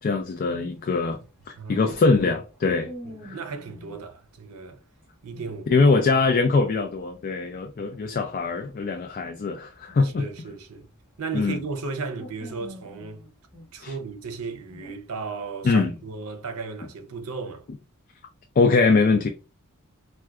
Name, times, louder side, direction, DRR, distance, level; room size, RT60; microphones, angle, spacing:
voice 1, 0.0-1.2 1.5-2.9 3.2-3.4 5.7-10.3 11.3-11.6 13.8-13.9 15.6-15.9 18.6-19.3, left 4 dB, 40° left, 0.4 m, -22 dB
sound 1, 0.7-4.0 5.0-6.1 6.3-11.5 11.8-14.9, equal, ahead, 1.1 m, -47 dB
voice 2, 3.0-4.8 5.2-5.8 7.8-7.9 10.0-10.9 11.2-13.2 13.7-17.7, right 4 dB, 85° right, 0.6 m, -35 dB
4.4 x 2.2 x 2.3 m
head